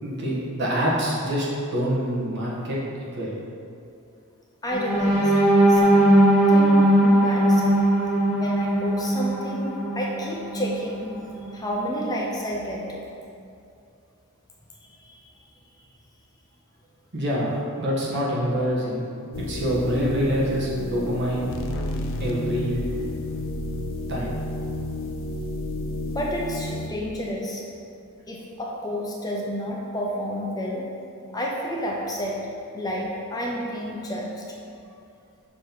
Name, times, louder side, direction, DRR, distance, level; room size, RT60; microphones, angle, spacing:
voice 1, 0.0-2.8 3.1-3.4 17.1-19.0 19.5-21.5 22.2-22.8 24.1-24.4, equal, 55° right, -5 dB, 1.3 m, -26 dB
voice 2, 4.6-5.3 5.7-6.1 6.4-7.9 8.3-11.1 11.5-13.0 15.0-15.2 26.1-27.6 28.3-30.9 31.3-32.4 32.7-34.4, equal, 15° left, -2 dB, 0.5 m, -30 dB
sound 1, 4.7-10.6 11.1-11.3 11.7-11.9, right 1 dB, 5° right, 1.3 m, -19 dB
sound 2, 19.3-26.9, left 1 dB, 60° left, 0.5 m, -31 dB
6.3 x 3.0 x 5.3 m, 2.5 s
head